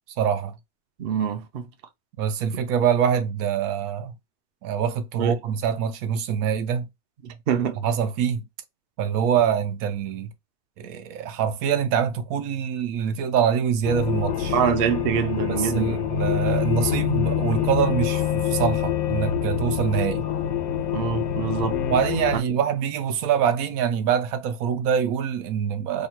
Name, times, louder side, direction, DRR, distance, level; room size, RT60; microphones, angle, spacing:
voice 1, 0.2-0.5 2.2-4.1 4.6-6.9 7.8-8.4 9.0-10.3 10.8-14.6 15.4-20.3 21.9-26.1, right 8 dB, 80° right, 1.0 m, -24 dB
voice 2, 1.0-1.7 5.2-5.3 7.2-7.8 14.5-16.0 20.9-21.8 22.3-22.4, right 8 dB, 55° right, 0.7 m, -25 dB
sound 1, 13.8-22.4, left 10 dB, 90° left, 1.2 m, -26 dB
3.0 x 2.3 x 4.2 m
omnidirectional pair, 1.5 m